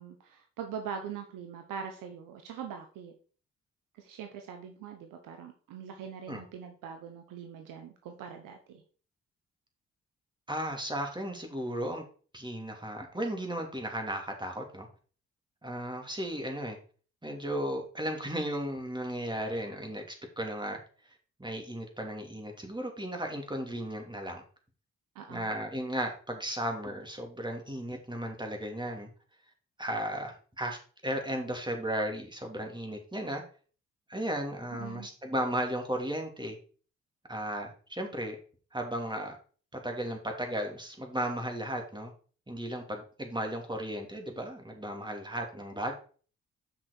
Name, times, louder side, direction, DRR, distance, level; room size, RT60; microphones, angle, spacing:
voice 1, 0.0-3.1 4.0-8.8 25.1-25.5 34.7-35.1, right 7 dB, 70° right, 5 dB, 1.1 m, -42 dB
voice 2, 10.5-12.0 12.3-14.9 15.6-16.8 17.2-20.0 20.4-20.8 21.4-24.4 25.3-29.1 29.8-33.4 34.1-36.6 37.3-38.4 38.7-39.4 39.7-42.1 42.5-46.0, equal, 15° right, 3 dB, 2.8 m, -35 dB
7.7 x 6.0 x 4.6 m, 0.41 s
hypercardioid pair, 45°, 33 cm